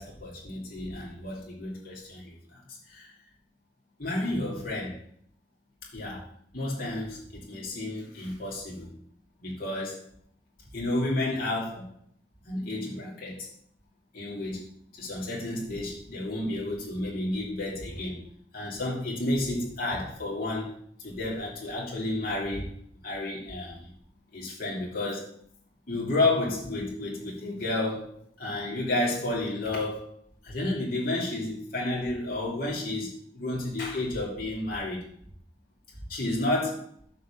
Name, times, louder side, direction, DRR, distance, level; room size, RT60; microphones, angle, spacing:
voice 1, 0.0-2.6 2.9-3.1 4.0-5.0 5.9-8.9 9.4-10.0 10.7-11.9 12.5-13.5 14.1-14.7 15.0-18.2 18.5-20.8 21.0-22.7 23.0-23.9 24.3-25.3 25.9-30.1 30.4-35.1 36.1-36.9, left 2 dB, 55° left, -5 dB, 2.9 m, -31 dB
10.0 x 4.2 x 7.0 m, 0.62 s
head